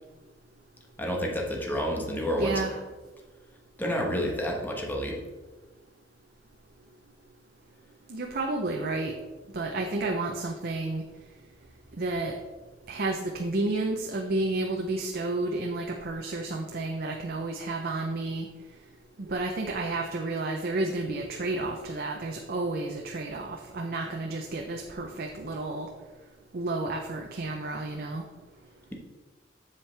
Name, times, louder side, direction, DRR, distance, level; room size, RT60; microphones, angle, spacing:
voice 1, 1.0-2.6 3.8-5.2, equal, 10° left, 0 dB, 1.2 m, -29 dB
voice 2, 2.4-2.8 8.1-9.1 9.5-11.0 12.0-12.4 12.9-18.5 19.2-25.9 26.5-28.2, right 2 dB, 55° right, 2 dB, 0.7 m, -31 dB
7.4 x 7.3 x 3.3 m, 1.2 s
head